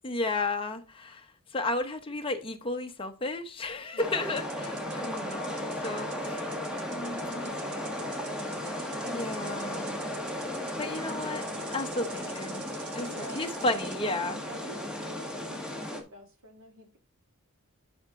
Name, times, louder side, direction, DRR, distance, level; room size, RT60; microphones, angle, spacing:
voice 1, 0.0-6.6 6.9-7.5 8.7-10.1 10.8-11.4 11.7-14.4, left 2 dB, 25° left, 1.0 m, -33 dB
voice 2, 3.9-4.7 6.6-8.6 13.0-13.5 14.5-17.0, right 1 dB, 65° right, 2.1 m, -50 dB
sound 1, 4.0-16.0, left 1 dB, 5° right, 1.5 m, -35 dB
sound 2, 4.3-14.0, right 6 dB, 80° right, 1.4 m, -49 dB
11.5 x 4.3 x 3.7 m
head